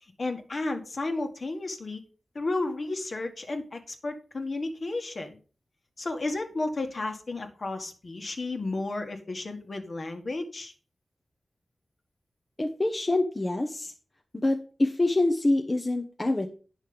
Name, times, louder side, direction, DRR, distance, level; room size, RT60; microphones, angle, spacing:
voice 1, 0.2-2.0 2.4-5.4 6.0-10.7, left 2 dB, 50° left, 5 dB, 1.6 m, -32 dB
voice 2, 12.6-13.9 14.4-16.5, left 2 dB, 25° left, 4 dB, 1.0 m, -26 dB
9.7 x 6.4 x 5.1 m, 0.37 s
wide cardioid pair, 100°, 0 cm